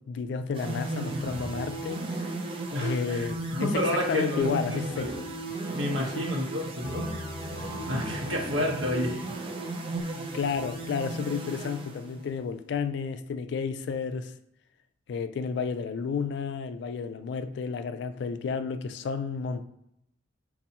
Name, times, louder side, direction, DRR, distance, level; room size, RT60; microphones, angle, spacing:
voice 1, 0.0-2.0 2.8-5.1 6.2-6.3 10.3-14.3 15.1-19.6, left 5 dB, 65° left, 0.3 m, -31 dB
sound 1, 0.5-12.4, right 2 dB, 30° right, 0.5 m, -35 dB
voice 2, 2.7-5.1 5.7-7.2 7.8-9.2, left 1 dB, 80° right, 1.1 m, -30 dB
sound 2, 6.8-10.0, left 1 dB, 20° left, 0.8 m, -41 dB
5.4 x 2.6 x 2.8 m
head